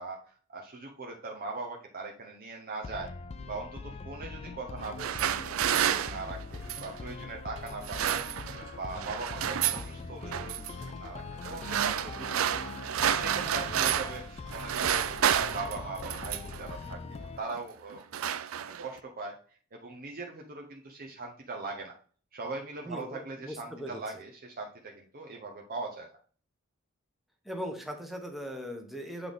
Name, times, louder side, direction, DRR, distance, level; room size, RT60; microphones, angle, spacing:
voice 1, 0.0-3.1 3.5-8.2 8.8-12.5 12.8-18.0 18.6-19.3 19.7-21.9 22.3-26.1, right 3 dB, 45° right, 1 dB, 0.8 m, -40 dB
sound 1, 2.8-17.4, left 4 dB, 30° left, 0.3 m, -42 dB
sound 2, 4.8-7.0 7.7-8.7 9.0-9.9 10.3-10.7 11.4-14.2 14.5-16.6 17.4-17.6 17.9-19.0, right 9 dB, 70° right, 0.4 m, -30 dB
voice 2, 22.9-24.0 27.4-29.3, equal, ahead, 3 dB, 1.0 m, -39 dB
8.0 x 3.9 x 3.6 m, 0.43 s
head